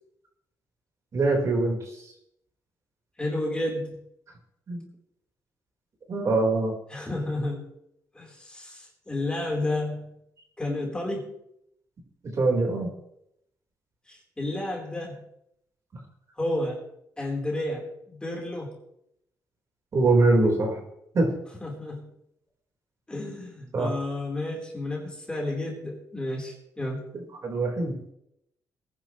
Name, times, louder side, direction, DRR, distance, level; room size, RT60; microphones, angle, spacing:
voice 1, 1.1-2.1 4.7-4.8 6.1-6.8 12.2-12.9 19.9-20.8 21.1-21.3 23.7-23.9 27.4-28.0, right 2 dB, 45° right, 0 dB, 4.5 m, -23 dB
voice 2, 3.2-4.0 6.9-7.7 8.1-10.1 10.6-11.3 14.1-15.2 16.4-16.8 17.2-18.8 21.6-22.1 23.1-27.0, left 1 dB, 15° left, -1 dB, 4.1 m, -31 dB
22.5 x 10.5 x 3.2 m, 0.77 s
cardioid pair, 105°, 7 cm